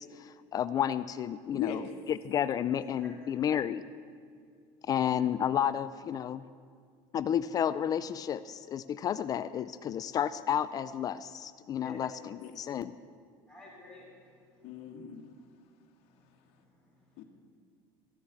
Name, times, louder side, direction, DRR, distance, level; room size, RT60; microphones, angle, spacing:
voice 1, 0.0-1.8 2.1-3.8 4.9-6.4 7.1-12.9, left 9 dB, 35° left, 14 dB, 0.4 m, -31 dB
voice 2, 1.5-2.0 12.4-12.5 14.6-15.3 17.2-17.3, left 9 dB, 60° left, 3 dB, 1.4 m, -37 dB
voice 3, 2.7-3.3 11.8-12.0 13.5-14.9 16.0-17.2, left 2 dB, 5° left, -11 dB, 3.5 m, -54 dB
14.0 x 7.1 x 8.3 m, 2.2 s
supercardioid pair, 130°, 12 cm